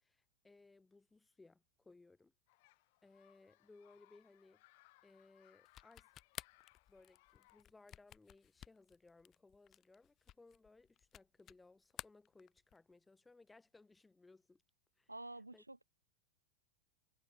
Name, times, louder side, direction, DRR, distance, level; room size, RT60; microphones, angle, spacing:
voice 1, 0.0-2.3 3.0-4.6 5.0-6.1 6.9-14.6 15.0-15.1 15.5-15.6, left 3 dB, 10° left, 2.1 m, -64 dB
sound 1, 2.5-7.6, left 23 dB, 50° left, 2.1 m, -70 dB
sound 2, 5.7-11.6 11.9-12.9, left 11 dB, 30° left, 0.7 m, -54 dB
voice 2, 15.1-15.8, right 2 dB, 85° right, 0.3 m, -49 dB
figure-of-eight pair, 90°, 0 cm